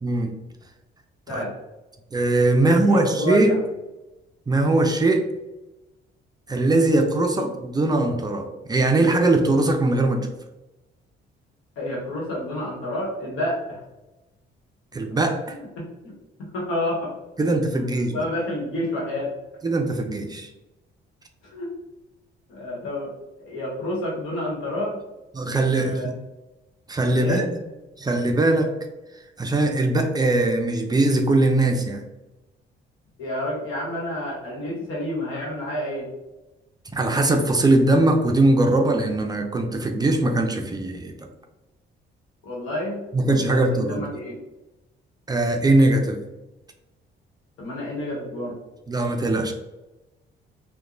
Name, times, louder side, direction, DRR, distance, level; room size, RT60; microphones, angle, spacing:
voice 1, 0.0-0.4 1.3-1.4 2.1-3.6 4.5-5.3 6.5-10.3 14.9-15.6 17.4-18.2 19.6-20.5 25.3-26.0 26.9-27.6 28.0-28.7 29.4-32.0 36.9-41.3 43.1-44.1 45.3-46.2 48.9-49.5, right 2 dB, 20° right, 4 dB, 0.4 m, -21 dB
voice 2, 2.6-3.6 7.3-7.5 11.8-13.8 15.5-16.1 16.4-17.2 17.7-17.8 18.1-19.3 21.4-21.7 22.5-25.0 25.8-26.2 27.1-27.5 33.2-36.1 42.4-43.0 43.4-44.4 47.6-48.5, left 1 dB, 90° left, -3 dB, 1.0 m, -29 dB
2.8 x 2.1 x 2.5 m, 1.0 s
cardioid pair, 90°, 20 cm